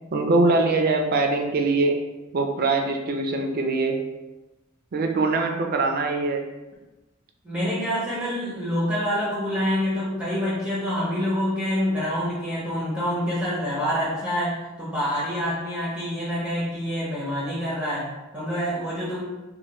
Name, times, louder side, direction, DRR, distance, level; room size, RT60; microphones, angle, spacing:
voice 1, 0.1-2.0 2.3-4.0 4.9-6.4, right 3 dB, 45° right, 4 dB, 0.4 m, -22 dB
voice 2, 7.4-19.2, equal, 5° right, -9 dB, 0.6 m, -27 dB
3.2 x 2.1 x 2.9 m, 1.1 s
head